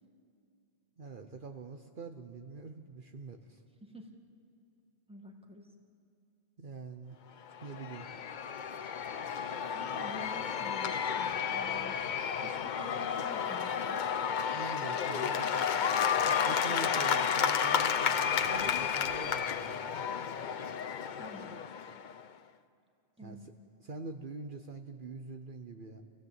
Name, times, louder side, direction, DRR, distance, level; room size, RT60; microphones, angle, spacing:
voice 1, 1.0-3.6 6.6-7.2 7.6-8.1 14.5-15.7 16.2-19.8 23.2-23.5 23.8-26.0, right 3 dB, 55° right, 5 dB, 1.1 m, -45 dB
voice 2, 5.1-5.7 9.7-11.9 12.4-14.0 21.2-21.6 23.2-23.5, right 1 dB, 5° right, 1 dB, 1.9 m, -49 dB
Cheering / Applause / Crowd, 7.5-22.2, left 7 dB, 55° left, 0.7 m, -32 dB
27.5 x 16.0 x 8.1 m, 2.5 s
omnidirectional pair, 1.0 m